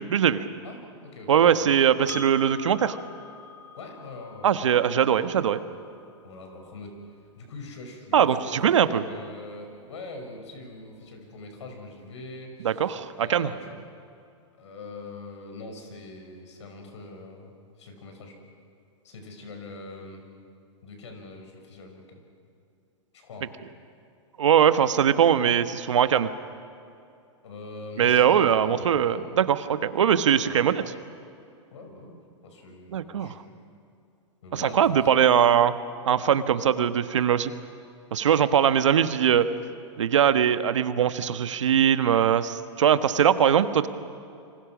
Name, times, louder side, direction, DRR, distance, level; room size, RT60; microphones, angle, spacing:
voice 1, 0.1-0.4 1.3-3.0 4.4-5.6 8.1-9.0 12.6-13.5 24.4-26.3 28.0-30.8 32.9-33.4 34.5-35.8 36.1-37.5 38.1-39.4 40.0-43.9, right 9 dB, 75° right, 11 dB, 1.3 m, -21 dB
voice 2, 0.6-2.2 3.8-4.5 6.2-13.7 14.6-18.4 19.0-20.2 20.8-22.2 23.1-23.5 27.4-29.3 30.5-30.8 31.7-32.2 32.4-33.4 34.4-35.1, left 2 dB, 70° left, 4 dB, 6.2 m, -43 dB
Percussion, 2.1-6.9, left 5 dB, 15° left, 1.8 m, -45 dB
27.5 x 25.5 x 6.2 m, 2.5 s
hypercardioid pair, 120°, 16 cm